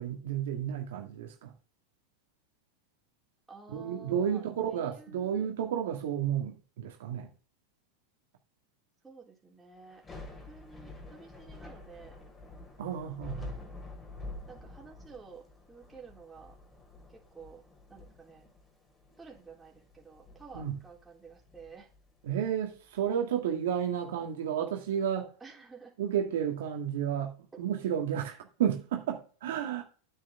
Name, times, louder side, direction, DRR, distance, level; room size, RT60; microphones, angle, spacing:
voice 1, 0.0-1.5 3.7-7.3 12.8-13.5 20.5-20.8 22.2-25.3 26.0-29.8, right 9 dB, 75° right, 1.9 m, -32 dB
voice 2, 3.5-5.5 9.0-10.0 10.5-12.2 13.0-13.7 14.5-16.6 17.1-17.6 17.9-18.5 19.2-21.9 25.4-26.0 27.5-27.6, right 5 dB, 10° right, 3.4 m, -51 dB
Thunder / Rain, 9.9-23.0, left 2 dB, 15° left, 3.2 m, -48 dB
9.4 x 8.3 x 3.6 m
hypercardioid pair, 115°, 0 cm